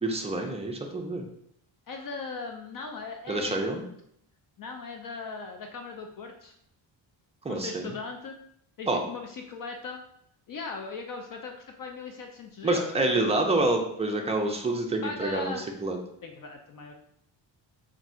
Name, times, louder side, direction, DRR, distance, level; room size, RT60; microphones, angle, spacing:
voice 1, 0.0-1.3 3.3-3.8 7.4-7.9 8.9-9.0 12.6-15.5 15.8-16.0, right 2 dB, 15° right, 2 dB, 0.4 m, -27 dB
voice 2, 1.9-4.0 4.6-6.5 7.5-8.4 8.8-10.0 10.5-13.3 15.0-15.7 16.2-16.9, left 4 dB, 50° left, 3 dB, 0.5 m, -39 dB
3.5 x 2.5 x 4.2 m, 0.71 s
cardioid pair, 150°, 46 cm